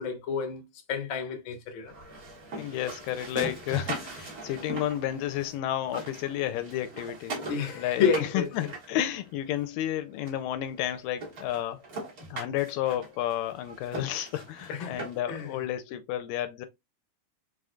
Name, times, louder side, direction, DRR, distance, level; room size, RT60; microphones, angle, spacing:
voice 1, 0.0-1.9 7.5-8.5 14.7-15.0 15.3-15.6, left 6 dB, 65° left, 1.2 m, -30 dB
sound 1, 1.9-5.6 5.8-9.6 10.3-10.4 10.8-10.9 11.2-15.4, right 2 dB, 60° right, 0.9 m, -40 dB
voice 2, 2.6-7.4 7.8-11.8 12.3-16.7, left 12 dB, 80° left, 2.1 m, -31 dB
4.9 x 4.3 x 2.2 m
omnidirectional pair, 4.0 m